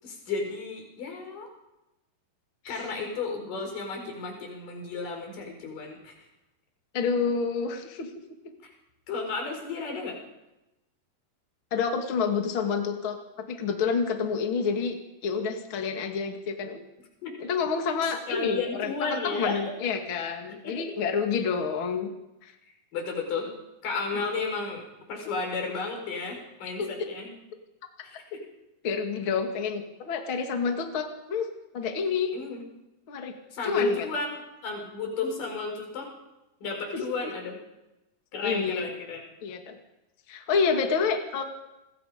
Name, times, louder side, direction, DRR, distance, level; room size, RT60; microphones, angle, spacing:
voice 1, 0.0-1.5 2.7-6.1 8.6-8.7 9.1-10.2 17.2-17.3 18.3-19.6 20.6-20.9 22.9-23.5 23.8-27.3 28.0-28.4 32.3-32.6 33.5-36.1 36.6-37.6 38.3-39.2, left 4 dB, 55° left, 2 dB, 6.4 m, -33 dB
voice 2, 6.9-8.1 11.7-15.0 15.2-16.8 17.4-22.1 22.4-22.5 26.8-26.9 28.8-31.5 31.7-32.3 33.1-33.3 33.6-34.0 38.4-38.8 39.4-39.8 40.3-41.4, left 5 dB, 40° left, 4 dB, 2.4 m, -28 dB
27.5 x 21.5 x 5.2 m, 0.95 s
omnidirectional pair, 4.6 m